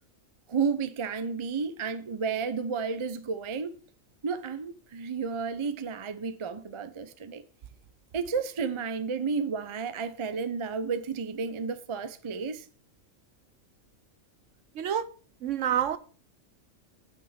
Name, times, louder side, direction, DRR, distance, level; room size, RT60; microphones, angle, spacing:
voice 1, 0.5-3.7 4.2-7.4 8.1-12.7, right 5 dB, 35° right, 0.5 m, -32 dB
voice 2, 14.7-15.1 15.4-16.0, right 9 dB, 65° right, 1.0 m, -27 dB
8.8 x 5.7 x 5.6 m
omnidirectional pair, 1.4 m